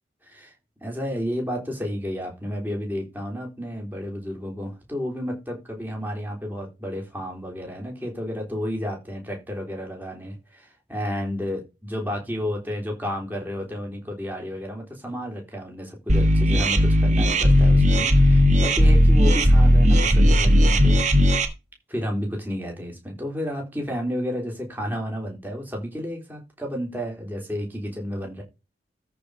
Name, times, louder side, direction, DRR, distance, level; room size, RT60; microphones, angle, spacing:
voice 1, 0.2-0.5 0.8-21.0 21.9-28.4, equal, 10° right, 3.5 m, -31 dB
sound 1, 16.1-21.5, equal, 45° right, 1.5 m, -16 dB
13.5 x 4.8 x 4.0 m
head